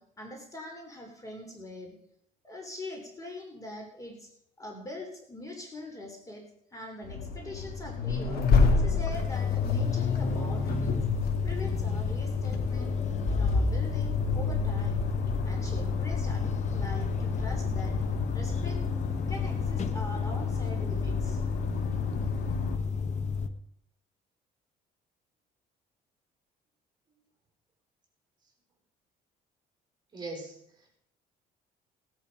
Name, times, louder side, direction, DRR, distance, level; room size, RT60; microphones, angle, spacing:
voice 1, 0.0-2.0 2.4-4.3 4.6-8.5 8.8-11.0 11.4-13.0 13.3-15.0 15.4-18.0 18.3-18.8 19.3-21.4, left 2 dB, 20° left, 3 dB, 3.4 m, -43 dB
Accelerating revving vroom, 7.0-22.8, left 4 dB, 65° left, 2.6 m, -30 dB
sound 1, 9.1-23.5, left 5 dB, 45° left, 1.3 m, -32 dB
voice 2, 30.1-31.0, right 2 dB, 25° right, -1 dB, 5.3 m, -41 dB
17.5 x 10.5 x 5.3 m, 0.72 s
cardioid pair, 110°, 17 cm